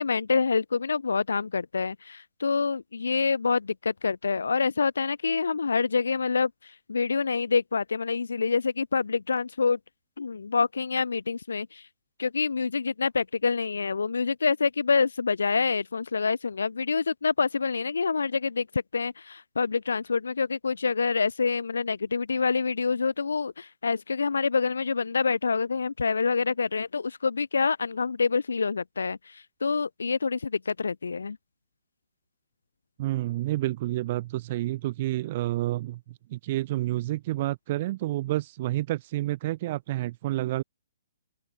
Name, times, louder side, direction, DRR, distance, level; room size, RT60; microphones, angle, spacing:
voice 1, 0.0-9.8 10.2-11.9 12.2-31.4, left 5 dB, 90° left, 1.3 m, -27 dB
voice 2, 33.0-36.0 36.3-40.6, right 16 dB, 40° right, 4.2 m, -29 dB
open air
hypercardioid pair, 155°, 0 cm